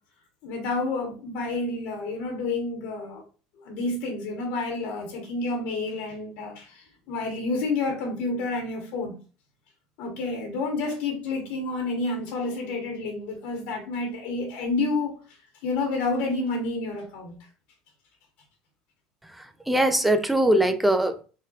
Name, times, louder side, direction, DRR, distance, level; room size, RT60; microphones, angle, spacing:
voice 1, 0.4-3.2 3.6-9.1 10.0-15.2 15.6-17.4, left 3 dB, 75° left, 2 dB, 1.3 m, -29 dB
voice 2, 19.2-21.2, right 1 dB, 5° right, 8 dB, 0.5 m, -22 dB
4.3 x 3.6 x 2.5 m, 0.36 s
supercardioid pair, 120°, 3 cm